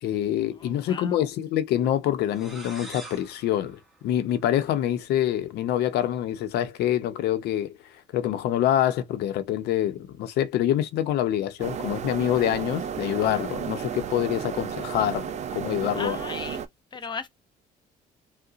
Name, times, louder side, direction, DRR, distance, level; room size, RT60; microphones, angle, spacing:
voice 1, 0.0-7.7 8.1-15.3 15.5-16.2, left 11 dB, 75° left, 0.6 m, -26 dB
voice 2, 0.6-1.3 16.0-16.6 16.9-17.3, left 5 dB, 25° left, 0.7 m, -36 dB
sound 1, 2.3-4.9, right 1 dB, ahead, 1.0 m, -45 dB
sound 2, 11.6-16.7, right 8 dB, 40° right, 0.5 m, -33 dB
3.8 x 2.1 x 2.4 m
cardioid pair, 110°, 17 cm